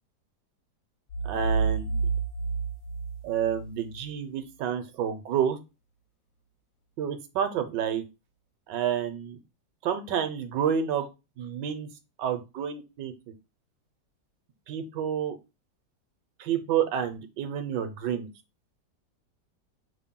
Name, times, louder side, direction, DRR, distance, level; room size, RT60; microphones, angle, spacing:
sound 1, 1.1-4.0, right 4 dB, 70° left, 0.7 m, -29 dB
voice 1, 1.2-2.0 3.2-5.6 7.0-8.0 8.7-9.4 9.8-11.1 11.4-11.9 12.2-13.1 14.7-15.4 16.4-18.3, right 8 dB, 75° right, 7 dB, 1.3 m, -29 dB
5.7 x 2.1 x 3.6 m, 0.27 s
omnidirectional pair, 2.0 m